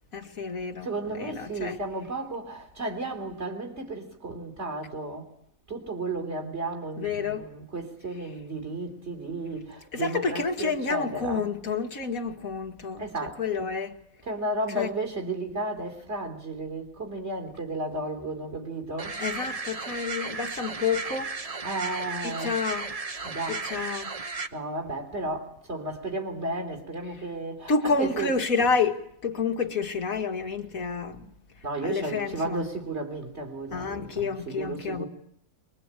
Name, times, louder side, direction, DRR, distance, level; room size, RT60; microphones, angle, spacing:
voice 1, 0.1-1.8 7.0-7.5 9.4-9.5 9.9-14.0 14.7-14.9 19.2-21.3 22.2-22.9 23.5-24.1 27.1-27.2 27.7-31.3 31.8-32.7 33.7-35.1, left 5 dB, 85° left, 2.3 m, -29 dB
voice 2, 0.8-5.3 5.7-11.5 13.0-13.7 14.2-19.2 21.6-22.6 23.2-23.6 24.5-28.7 31.6-35.1, right 2 dB, 50° right, 4.0 m, -33 dB
sound 1, 19.0-24.5, right 3 dB, 30° right, 1.1 m, -35 dB
23.5 x 22.0 x 9.0 m
omnidirectional pair, 1.4 m